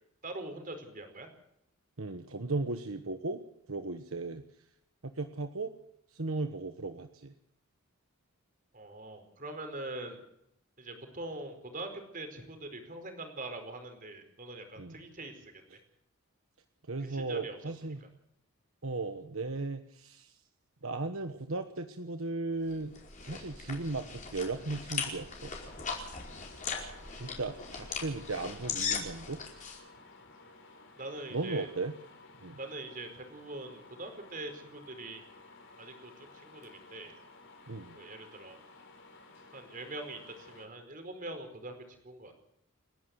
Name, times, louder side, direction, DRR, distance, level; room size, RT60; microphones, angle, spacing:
voice 1, 0.2-1.3 8.7-10.2 10.8-15.3 17.1-17.6 31.0-31.7 32.6-35.2 35.8-37.1 37.9-38.6 39.5-41.8 42.0-42.4, right 2 dB, 40° right, 6 dB, 4.7 m, -43 dB
voice 2, 2.0-3.4 3.7-4.4 5.0-5.7 6.1-7.3 14.8-15.0 15.7-15.8 16.9-18.0 18.8-20.4 20.8-25.5 27.1-29.4 31.3-31.9 32.4-32.6 37.7-38.0, right 3 dB, 70° right, 7 dB, 1.2 m, -36 dB
sound 1, 22.7-29.8, left 5 dB, 35° left, 5.0 m, -39 dB
sound 2, 25.4-40.7, left 3 dB, 55° left, 4.4 m, -55 dB
30.0 x 11.5 x 7.9 m, 0.79 s
head